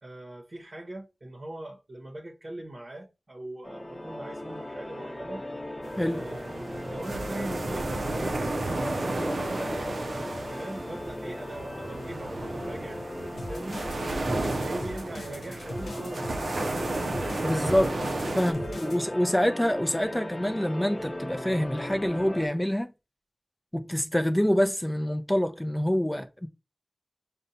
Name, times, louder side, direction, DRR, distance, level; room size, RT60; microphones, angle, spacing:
voice 1, 0.0-5.4 6.1-13.8 14.2-18.0 18.3-19.1, right 1 dB, 50° right, 0.8 m, -41 dB
sound 1, 3.6-22.5, left 1 dB, 30° left, 0.9 m, -37 dB
sound 2, 5.8-18.5, right 2 dB, 75° right, 0.4 m, -33 dB
sound 3, 13.4-19.0, left 1 dB, 85° left, 0.8 m, -41 dB
voice 2, 17.4-17.9 18.4-22.9 23.7-26.5, equal, 10° left, 0.4 m, -26 dB
5.3 x 2.1 x 2.7 m
cardioid pair, 40°, 0 cm